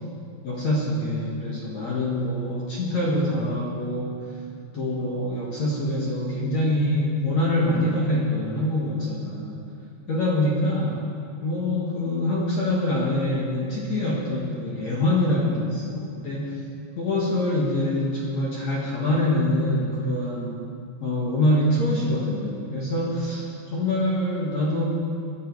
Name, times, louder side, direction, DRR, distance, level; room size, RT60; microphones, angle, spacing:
voice 1, 0.4-4.2 4.7-9.6 10.1-11.0 11.4-16.5 17.0-20.5 21.0-23.4 23.7-24.8, left 1 dB, 50° left, -5 dB, 2.3 m, -25 dB
20.5 x 11.5 x 4.7 m, 2.4 s
omnidirectional pair, 5.2 m